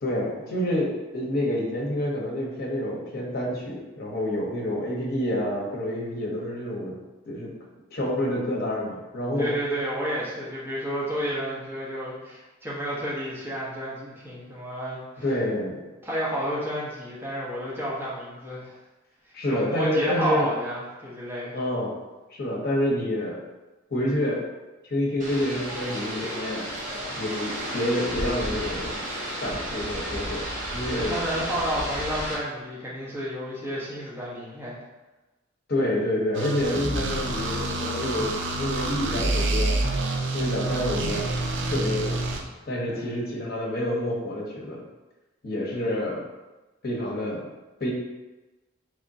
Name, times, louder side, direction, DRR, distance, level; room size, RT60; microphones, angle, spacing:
voice 1, 0.0-7.0 7.2-7.5 7.9-9.5 15.2-15.9 19.3-20.5 21.5-22.0 22.3-23.4 23.9-24.4 24.8-26.7 27.2-29.0 29.4-30.5 30.7-31.1 35.7-39.8 40.3-41.3 41.7-42.2 42.7-44.8 45.4-46.3 46.8-47.5 47.8-47.9, left 1 dB, 50° left, -3 dB, 0.9 m, -28 dB
voice 2, 9.4-15.2 16.0-18.8 19.5-21.6 30.9-34.8 42.9-43.2, equal, 10° right, -8 dB, 0.9 m, -31 dB
sound 1, 25.2-32.3, equal, 40° right, 1.0 m, -32 dB
sound 2, 36.3-42.4, right 2 dB, 65° right, 0.5 m, -27 dB
3.5 x 3.2 x 2.7 m, 1.1 s
head